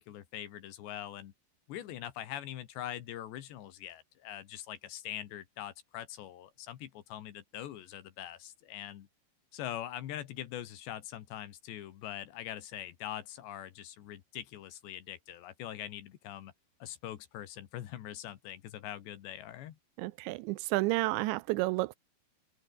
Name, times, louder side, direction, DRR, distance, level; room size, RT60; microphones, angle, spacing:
voice 1, 0.0-1.3 1.7-9.1 9.5-16.5 16.8-19.8, left 12 dB, 70° left, 3.7 m, -43 dB
voice 2, 20.0-22.0, right 21 dB, 80° right, 2.8 m, -31 dB
omnidirectional pair, 5.4 m